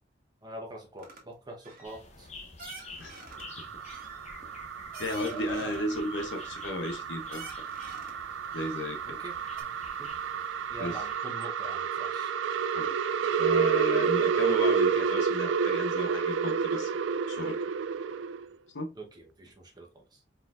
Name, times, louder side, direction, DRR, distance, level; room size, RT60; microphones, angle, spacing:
voice 1, 0.4-2.3 5.2-5.8 9.0-9.7 10.0-10.1 10.7-12.3 14.3-14.4 18.9-20.2, right 2 dB, 20° right, 1.1 m, -44 dB
sound 1, 1.0-1.2 1.6-2.0 2.6-3.5 3.8-5.9 6.3-7.0 7.3-8.2 8.5-9.2 9.6-9.7, right 3 dB, 50° right, 1.4 m, -48 dB
sound 2, 1.8-11.2, left 3 dB, 40° left, 0.9 m, -50 dB
sound 3, 3.3-18.5, right 6 dB, 85° right, 0.4 m, -30 dB
voice 2, 5.0-7.5 8.5-9.2 10.8-11.0 12.7-12.9 13.4-16.9 17.3-17.6 18.7-18.9, left 1 dB, 75° left, 0.9 m, -34 dB
4.5 x 3.9 x 2.5 m
head